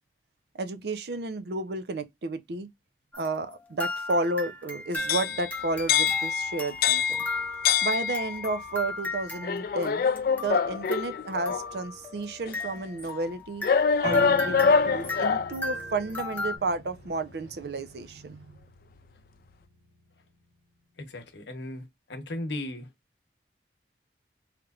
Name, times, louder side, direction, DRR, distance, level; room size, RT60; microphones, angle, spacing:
voice 1, 0.6-2.7 3.2-7.2 7.8-10.0 10.4-13.6 14.0-18.6, right 2 dB, 65° right, 0.5 m, -32 dB
sound 1, 3.1-16.6, left 2 dB, 10° left, 0.6 m, -37 dB
sound 2, 5.0-8.6 9.4-11.7 12.5-12.6 13.6-15.6, left 6 dB, 50° left, 0.3 m, -25 dB
Piano, 14.0-20.2, equal, 25° right, 1.7 m, -42 dB
voice 2, 21.0-22.9, left 1 dB, 85° left, 0.9 m, -36 dB
3.3 x 3.1 x 2.4 m
head